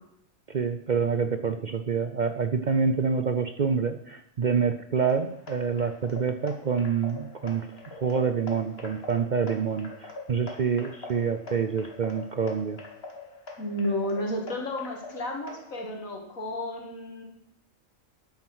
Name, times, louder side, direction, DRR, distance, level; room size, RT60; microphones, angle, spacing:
voice 1, 0.5-12.8, right 6 dB, 50° right, 8 dB, 0.5 m, -27 dB
sound 1, 5.0-15.8, left 3 dB, 50° left, 1.9 m, -44 dB
voice 2, 13.6-17.3, left 1 dB, 85° left, 1 dB, 2.5 m, -32 dB
9.6 x 9.0 x 6.2 m, 0.76 s
omnidirectional pair, 1.4 m